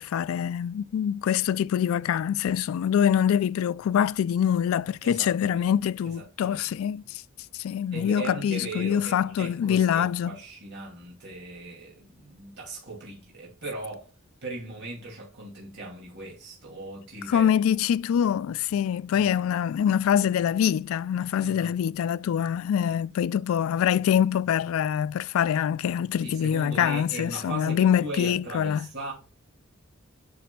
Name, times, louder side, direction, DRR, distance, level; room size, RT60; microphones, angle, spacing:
voice 1, 0.0-7.2 7.5-10.3 17.3-28.9, left 9 dB, 85° left, 0.3 m, -25 dB
voice 2, 5.0-5.7 6.0-6.6 7.9-14.1 14.4-17.6 19.1-19.3 21.4-21.7 26.2-29.1, right 2 dB, 55° right, 2.4 m, -39 dB
8.8 x 5.1 x 2.2 m
head